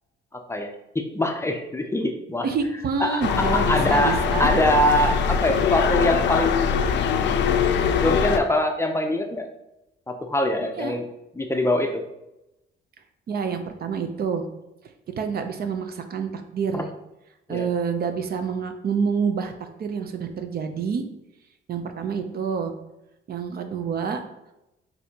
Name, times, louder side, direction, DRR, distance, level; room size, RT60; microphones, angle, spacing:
voice 1, 0.5-2.5 3.0-6.7 7.9-9.5 10.1-11.1 11.3-12.0 16.7-16.8 17.5-17.7, left 1 dB, 15° left, 3 dB, 0.5 m, -23 dB
voice 2, 2.4-4.5 10.8-11.0 13.3-14.5 15.2-16.9 17.5-19.5 19.8-21.0 21.7-22.7 23.3-24.2, right 6 dB, 50° right, 7 dB, 0.5 m, -27 dB
sound 1, 3.2-8.4, left 6 dB, 65° left, 0.4 m, -22 dB
6.2 x 2.7 x 2.8 m, 0.90 s
cardioid pair, 90°, 20 cm